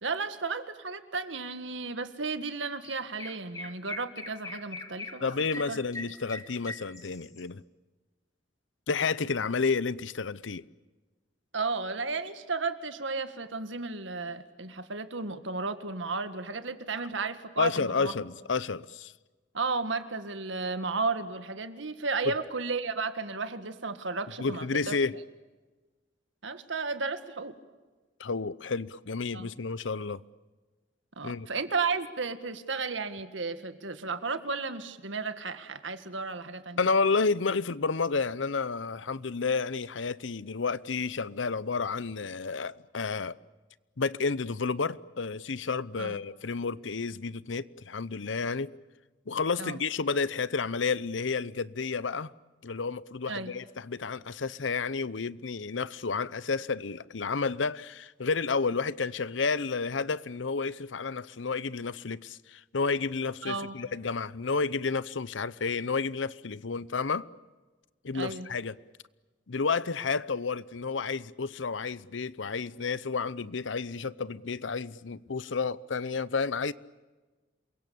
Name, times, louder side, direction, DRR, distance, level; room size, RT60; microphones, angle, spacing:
voice 1, 0.0-5.3 5.7-5.8 11.5-18.1 19.5-24.9 26.4-27.5 29.3-29.5 31.2-36.9 46.0-46.1 49.6-49.8 53.3-53.5 63.4-63.8 68.1-68.5, right 4 dB, 85° right, 1.9 m, -33 dB
Chirp tweet, 2.4-2.6 2.8-7.4, left 2 dB, 20° left, 2.2 m, -41 dB
voice 2, 5.2-7.6 8.9-10.6 17.6-19.1 22.3-22.4 24.4-25.1 28.2-30.2 31.2-31.5 36.8-43.3 44.0-48.7 49.3-52.3 52.6-67.3 68.0-68.8 69.5-76.7, left 4 dB, 85° left, 0.8 m, -31 dB
28.0 x 23.0 x 8.7 m
head